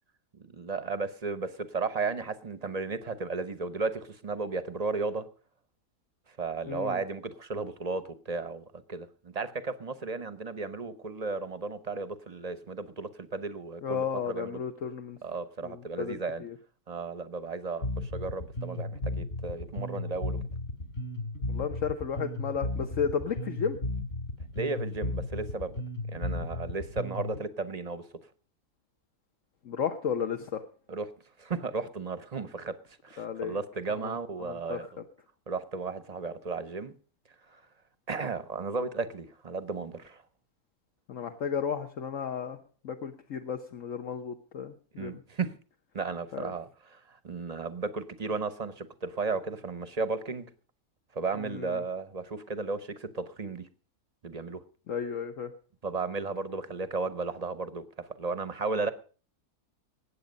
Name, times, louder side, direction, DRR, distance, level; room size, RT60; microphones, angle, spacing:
voice 1, 0.4-5.3 6.4-14.6 15.2-16.4 16.9-20.4 24.5-25.8 26.1-28.0 30.9-31.1 31.4-32.7 33.0-35.0 35.5-36.9 38.1-40.2 45.0-45.5 45.9-50.5 51.1-53.7 54.2-54.6 55.8-58.9, right 4 dB, 35° right, 13 dB, 0.8 m, -34 dB
voice 2, 6.7-7.0 13.8-15.2 15.6-16.6 21.5-23.8 29.6-30.6 33.2-33.6 34.0-34.2 34.4-34.8 41.1-42.6 42.8-45.2 46.3-46.5 51.4-51.8 54.9-55.5, left 7 dB, 60° left, 5 dB, 1.3 m, -33 dB
Bass guitar, 17.8-27.4, left 1 dB, 45° left, 3.7 m, -34 dB
20.0 x 8.6 x 5.3 m, 0.39 s
omnidirectional pair, 1.6 m